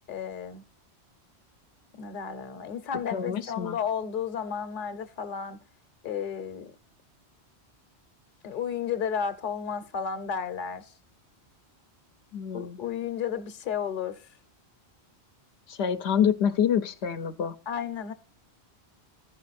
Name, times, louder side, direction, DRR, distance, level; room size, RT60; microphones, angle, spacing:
voice 1, 0.1-0.6 2.0-5.6 6.0-6.7 8.4-10.8 12.5-14.2 17.7-18.1, left 7 dB, 50° left, 1.0 m, -32 dB
voice 2, 3.1-3.8 12.3-12.8 15.7-17.5, left 8 dB, 80° left, 0.9 m, -27 dB
14.5 x 5.2 x 4.1 m
omnidirectional pair, 1.1 m